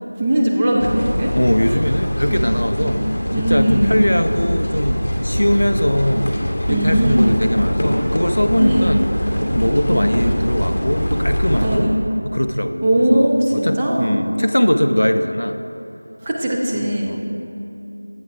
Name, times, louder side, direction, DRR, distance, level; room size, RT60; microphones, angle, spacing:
voice 1, 0.2-1.3 2.3-2.4 2.8-2.9 3.3-4.0 6.7-7.2 8.6-8.9 9.9-10.0 11.6-12.0 12.8-14.2 16.2-17.2, right 1 dB, 15° right, -4 dB, 0.5 m, -19 dB
sound 1, 0.8-11.8, equal, 35° left, 0.9 m, -22 dB
voice 2, 1.3-3.0 3.4-6.3 6.7-9.1 9.5-11.9 12.2-15.6 17.1-17.2, equal, 75° left, 8 dB, 0.4 m, -20 dB
7.9 x 5.5 x 4.8 m, 2.8 s
figure-of-eight pair, 175°, 0 cm